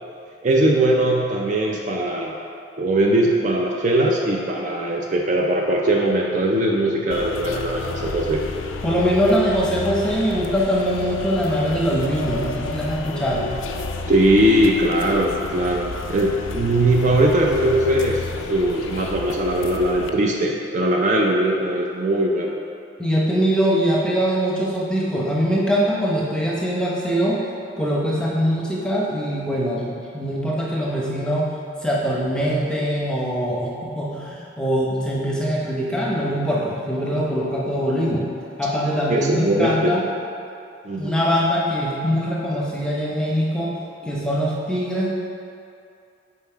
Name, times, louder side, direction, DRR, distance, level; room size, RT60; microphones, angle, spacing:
voice 1, 0.4-2.4 2.8-8.4 14.0-18.2 18.5-22.6 39.1-39.9 40.8-41.2, right 1 dB, 40° right, -1 dB, 0.4 m, -20 dB
sound 1, 7.1-20.1, left 3 dB, 85° left, 0.4 m, -31 dB
voice 2, 8.8-13.5 23.0-27.4 27.8-31.5 31.8-38.2 38.6-40.1 41.0-43.7 44.1-45.1, equal, 5° left, -5 dB, 0.7 m, -22 dB
5.7 x 4.1 x 4.5 m, 2.6 s
head